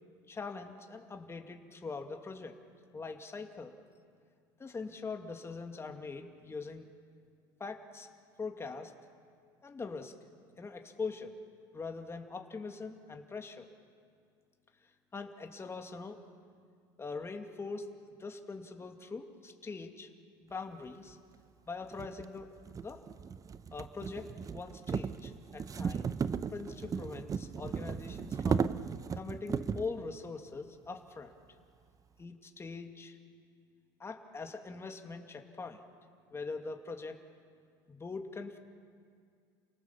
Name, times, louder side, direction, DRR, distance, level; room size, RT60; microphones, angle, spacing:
voice 1, 0.3-2.6 2.9-3.8 4.6-6.9 7.6-8.1 8.4-8.9 9.6-10.1 10.6-11.3 11.7-13.7 15.1-16.2 17.0-17.9 18.2-20.1 20.4-21.2 21.7-22.5 22.8-23.0 23.7-28.7 29.1-31.3 32.2-33.2 34.0-35.8 36.3-37.2 37.9-38.6, left 4 dB, 25° left, 4 dB, 2.3 m, -42 dB
sound 1, 21.1-21.2 21.9-29.9, right 6 dB, 30° right, 0.8 m, -36 dB
29.5 x 18.5 x 7.2 m, 2.2 s
supercardioid pair, 85°, 11 cm